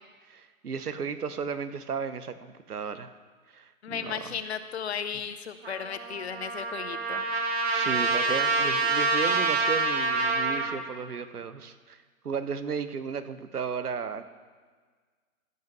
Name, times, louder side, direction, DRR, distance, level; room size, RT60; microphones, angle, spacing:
voice 1, 0.3-3.1 3.5-4.2 7.2-7.3 7.7-14.2, right 6 dB, 85° right, 12 dB, 1.0 m, -34 dB
voice 2, 3.8-7.2, left 7 dB, 45° left, 11 dB, 0.8 m, -35 dB
Trumpet, 5.6-10.8, right 3 dB, 45° right, 1.3 m, -27 dB
15.0 x 5.5 x 6.2 m, 1.5 s
hypercardioid pair, 145°, 44 cm